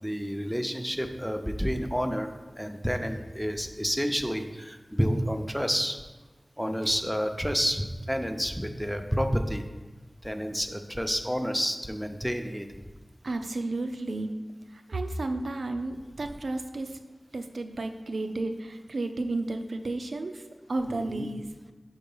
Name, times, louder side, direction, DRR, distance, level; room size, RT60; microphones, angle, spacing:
voice 1, 0.0-6.0 6.6-9.6 10.2-12.7 20.9-21.3, equal, ahead, 6 dB, 0.6 m, -29 dB
voice 2, 13.2-14.3 14.7-17.0 17.3-20.4 20.7-21.5, right 2 dB, 90° right, 6 dB, 0.5 m, -32 dB
5.3 x 4.7 x 5.4 m, 1.2 s
wide cardioid pair, 45°, 0 cm